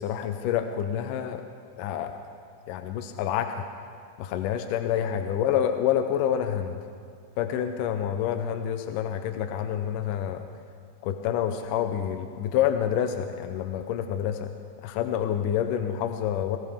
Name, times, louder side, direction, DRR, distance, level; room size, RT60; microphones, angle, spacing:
voice 1, 0.0-1.4 1.8-2.3 2.7-3.7 4.2-6.8 7.4-10.4 11.0-14.5 14.8-16.6, left 9 dB, 75° left, 7 dB, 2.1 m, -28 dB
20.5 x 17.0 x 3.5 m, 2.2 s
omnidirectional pair, 4.1 m